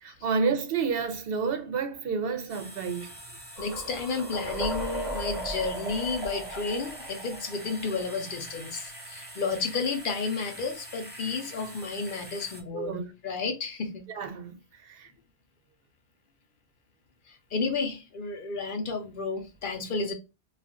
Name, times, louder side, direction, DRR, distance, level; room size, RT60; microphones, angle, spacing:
voice 1, 0.0-3.1 12.7-13.1 14.1-15.1, right 5 dB, 65° right, 0.8 m, -30 dB
sound 1, 2.5-12.6, right 1 dB, 10° left, 0.8 m, -45 dB
voice 2, 3.6-13.0 13.2-14.1 17.3-20.1, left 4 dB, 60° left, 0.7 m, -32 dB
sound 2, 3.6-8.5, right 1 dB, 30° right, 0.9 m, -37 dB
2.4 x 2.4 x 3.5 m
omnidirectional pair, 1.1 m